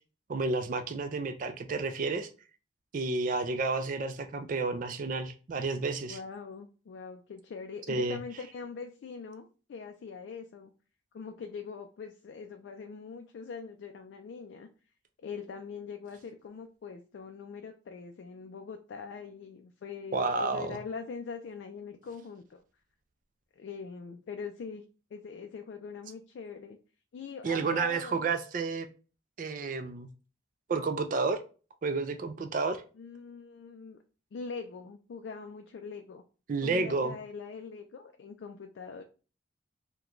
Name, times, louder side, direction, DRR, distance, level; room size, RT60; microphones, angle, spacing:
voice 1, 0.3-2.3 2.9-6.2 7.9-8.2 20.1-20.8 27.4-28.9 29.4-30.1 30.7-31.4 31.8-32.8 36.5-37.2, right 4 dB, 45° right, 8 dB, 0.3 m, -31 dB
voice 2, 6.1-10.7 11.1-14.7 15.2-22.6 23.6-24.8 25.1-26.8 27.1-28.3 33.0-34.0 34.3-36.2 36.6-39.0, left 5 dB, 70° left, 5 dB, 0.3 m, -42 dB
2.9 x 2.2 x 3.7 m, 0.36 s
head